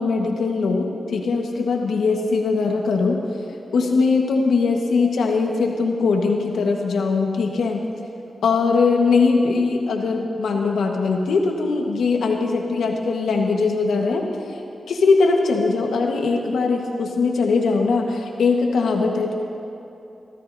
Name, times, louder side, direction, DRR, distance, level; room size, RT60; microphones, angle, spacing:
voice 1, 0.0-3.2 3.7-7.8 8.4-14.3 14.9-19.3, left 4 dB, 90° left, 1 dB, 1.3 m, -20 dB
26.0 x 13.5 x 2.7 m, 2.8 s
cardioid pair, 70°, 0 cm